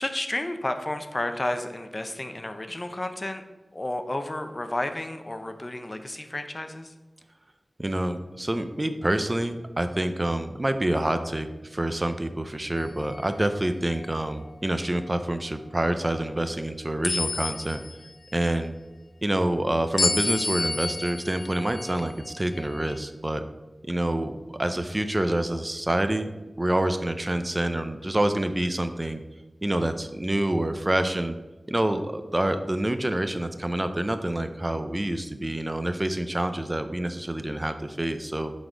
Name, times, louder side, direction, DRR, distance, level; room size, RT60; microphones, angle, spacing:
voice 1, 0.0-3.4 3.7-6.9, left 1 dB, 35° left, 8 dB, 0.7 m, -31 dB
voice 2, 7.8-17.8 18.3-18.7 19.2-23.4 23.9-26.3 26.6-29.2 29.6-31.4 31.7-38.5, right 1 dB, 30° right, 9 dB, 0.5 m, -27 dB
sound 1, 12.8-13.3 14.0-14.2 17.0-18.1 20.0-23.0, left 3 dB, 70° left, 0.5 m, -30 dB
7.8 x 4.1 x 5.0 m, 1.1 s
wide cardioid pair, 55°, 0 cm